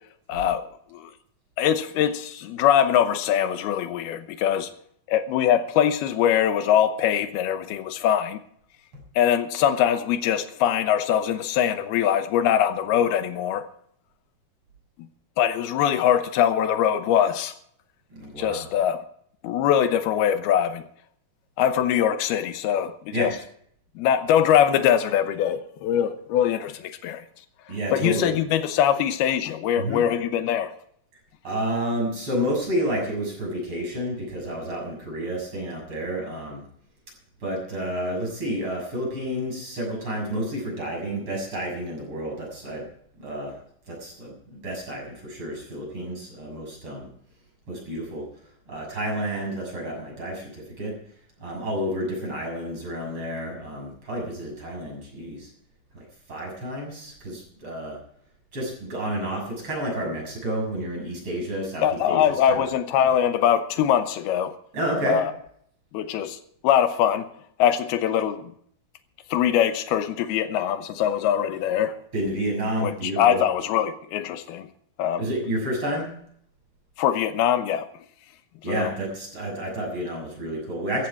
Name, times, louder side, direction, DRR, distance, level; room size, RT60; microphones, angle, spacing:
voice 1, 0.3-0.6 0.9-1.1 1.6-4.7 5.1-8.4 9.2-13.7 15.4-17.5 18.4-19.0 19.4-20.9 21.6-23.3 24.0-27.2 27.9-30.7 61.8-64.5 65.1-65.3 65.9-66.4 66.6-67.3 67.6-68.5 69.3-72.0 72.8-74.7 75.0-75.2 77.0-77.9 78.7-78.9, left 9 dB, 85° left, 2.9 m, -22 dB
voice 2, 18.1-18.7 23.1-23.3 27.7-28.4 29.8-30.0 31.4-36.6 37.4-42.8 43.2-43.5 43.9-47.1 47.7-48.2 48.7-50.9 51.4-55.5 55.9-58.0 58.5-62.6 64.7-65.2 72.1-73.4 75.2-76.1 78.6-81.1, right 1 dB, 30° right, 7.2 m, -30 dB
14.5 x 14.5 x 4.6 m
omnidirectional pair, 4.4 m